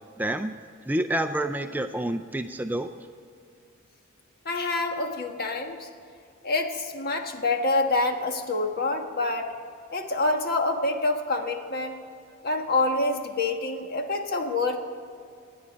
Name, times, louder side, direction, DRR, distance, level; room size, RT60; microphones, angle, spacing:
voice 1, 0.2-0.6 0.9-2.9, right 1 dB, 10° right, 8 dB, 0.4 m, -28 dB
voice 2, 4.4-5.9 6.4-9.5 9.9-12.0 12.4-14.8, left 2 dB, 50° left, 4 dB, 1.5 m, -26 dB
27.0 x 9.7 x 5.2 m, 2.5 s
head